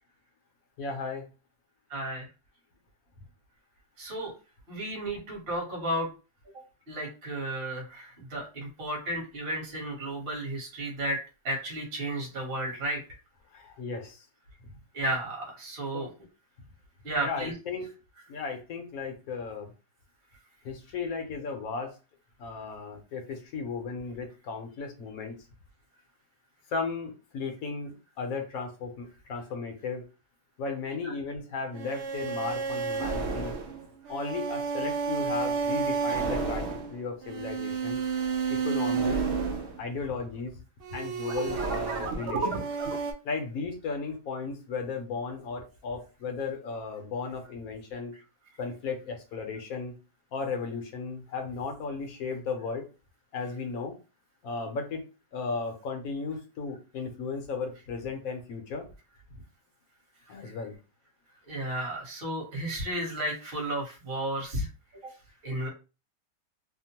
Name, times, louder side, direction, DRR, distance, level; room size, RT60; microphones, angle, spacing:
voice 1, 0.8-1.3 13.5-14.2 15.9-16.1 17.2-17.9 18.3-19.7 20.6-21.9 22.4-25.3 26.7-30.0 30.6-33.5 34.1-38.0 38.5-39.2 39.8-40.5 40.9-42.7 43.2-48.1 48.6-49.9 50.3-52.8 53.3-54.0 54.4-55.0 55.3-58.9 60.3-60.7, left 4 dB, 65° left, 4 dB, 1.0 m, -35 dB
voice 2, 1.9-2.2 4.0-4.3 4.7-6.1 6.9-11.2 11.4-13.0 14.9-16.1 17.0-17.6 31.0-31.1 38.0-38.1 60.4-60.6 61.5-64.7 65.4-65.7, right 1 dB, 40° right, -1 dB, 1.1 m, -33 dB
sound 1, 31.7-40.2 40.8-43.1, right 5 dB, 90° right, 0.6 m, -31 dB
2.8 x 2.1 x 2.8 m, 0.31 s
omnidirectional pair, 1.8 m